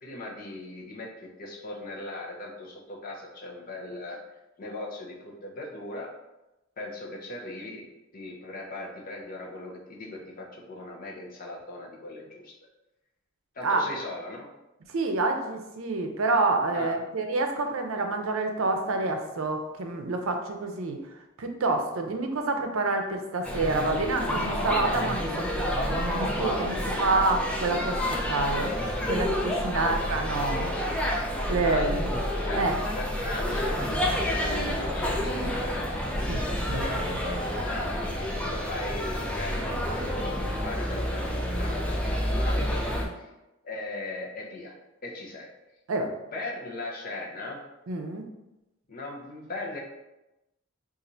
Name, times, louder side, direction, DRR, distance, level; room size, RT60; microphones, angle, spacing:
voice 1, 0.0-4.2 4.6-6.1 6.8-7.9 8.1-12.5 13.5-14.5 16.7-17.0 29.7-30.1 31.6-32.1 32.4-32.7 32.9-36.0 36.7-37.0 37.6-38.2 38.4-43.3 43.6-44.7 45.0-45.5 46.3-47.6 48.9-49.8, left 2 dB, 45° left, -2 dB, 0.7 m, -39 dB
voice 2, 14.9-21.0 21.4-25.4 25.8-28.7 29.0-30.7 31.5-32.1 32.5-32.8 36.1-37.0 45.9-46.1 47.9-48.2, right 3 dB, 80° right, 5 dB, 0.5 m, -28 dB
sound 1, 23.4-43.0, equal, 5° left, 0.4 m, -29 dB
2.6 x 2.5 x 4.2 m, 0.96 s
head